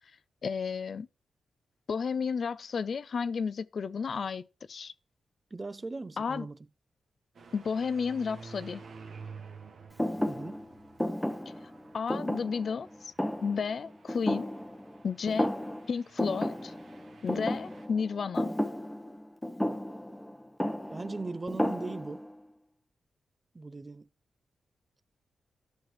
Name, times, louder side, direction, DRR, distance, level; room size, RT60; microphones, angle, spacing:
voice 1, 0.4-1.1 1.9-4.9 6.2-6.5 7.5-8.8 11.9-13.1 13.4-14.5 15.0-15.5 15.9-16.7 17.2-18.5, left 5 dB, 65° left, 0.4 m, -32 dB
voice 2, 5.5-6.6 10.2-10.6 20.9-22.3 23.5-24.1, right 3 dB, 30° right, 0.5 m, -39 dB
sound 1, 7.3-17.9, right 4 dB, 70° right, 1.1 m, -51 dB
Thump thud, 10.0-15.0 15.3-15.9 16.2-22.3, left 1 dB, 10° left, 0.9 m, -33 dB
11.0 x 6.0 x 3.2 m
cardioid pair, 60°, 0 cm